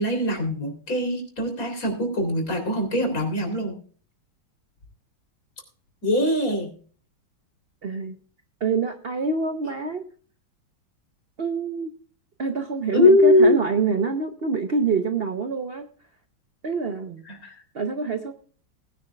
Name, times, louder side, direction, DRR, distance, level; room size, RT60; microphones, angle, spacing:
voice 1, 0.0-3.8 6.0-6.7 12.9-13.6 17.3-17.6, left 1 dB, 40° left, 4 dB, 3.8 m, -21 dB
voice 2, 7.8-8.2 8.6-10.0 11.4-11.9 12.4-15.9 16.6-17.2 17.7-18.3, right 4 dB, 55° right, 7 dB, 0.6 m, -26 dB
20.0 x 9.7 x 2.4 m, 0.43 s
omnidirectional pair, 2.3 m